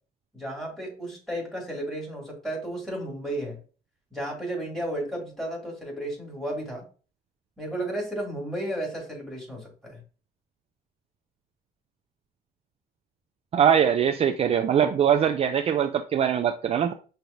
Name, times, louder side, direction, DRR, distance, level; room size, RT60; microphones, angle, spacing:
voice 1, 0.3-3.6 4.1-6.9 7.6-10.0, right 1 dB, ahead, -2 dB, 2.5 m, -33 dB
voice 2, 13.5-16.9, right 8 dB, 35° right, 6 dB, 0.4 m, -22 dB
5.7 x 3.3 x 2.6 m, 0.37 s
cardioid pair, 110°, 17 cm